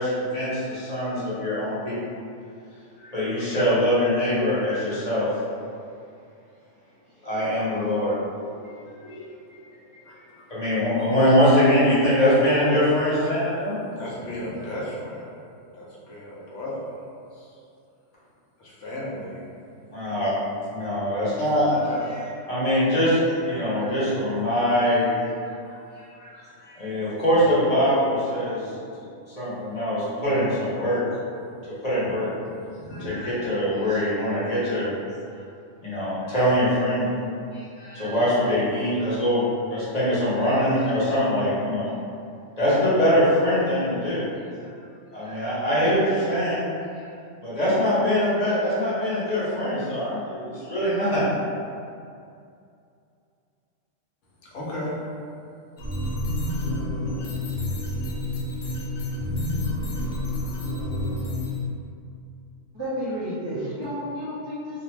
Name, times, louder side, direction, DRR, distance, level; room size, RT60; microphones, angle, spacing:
voice 1, 0.0-2.0 3.0-5.3 7.2-8.2 8.6-8.8 9.0-9.3 10.5-13.8 19.9-20.3 20.7-21.8 22.5-25.1 25.4-25.5 26.2-26.3 26.7-28.7 29.4-31.0 31.8-32.3 33.0-34.9 35.8-37.1 37.5-39.4 39.7-41.9 42.6-44.2 45.1-46.7 47.4-51.2, equal, 35° left, -11 dB, 1.0 m, -23 dB
voice 2, 10.0-10.4 14.0-15.3 15.7-16.9 17.3-17.6 18.6-19.4 21.7-22.2 31.6-31.7 32.5-33.1 54.5-55.0, left 1 dB, 75° left, -6 dB, 1.0 m, -35 dB
sound 1, 55.8-61.6, left 1 dB, 60° left, 0.7 m, -29 dB
voice 3, 62.7-64.8, equal, 45° right, -11 dB, 0.3 m, -31 dB
2.6 x 2.1 x 3.1 m, 2.5 s
omnidirectional pair, 1.3 m